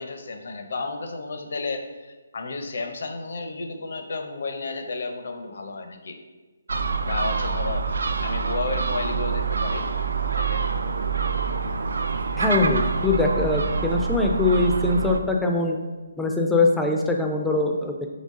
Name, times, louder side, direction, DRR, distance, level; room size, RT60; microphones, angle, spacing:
voice 1, 0.0-6.2 7.0-7.9 8.2-9.9 10.3-10.6, left 3 dB, 60° left, 6 dB, 0.6 m, -32 dB
Gull seagull, 6.7-15.2, right 5 dB, 70° right, 0.3 m, -26 dB
voice 2, 12.4-15.8 16.2-18.1, left 3 dB, 5° left, 1 dB, 0.4 m, -22 dB
3.9 x 3.5 x 3.6 m, 1.3 s
figure-of-eight pair, 150°, 0 cm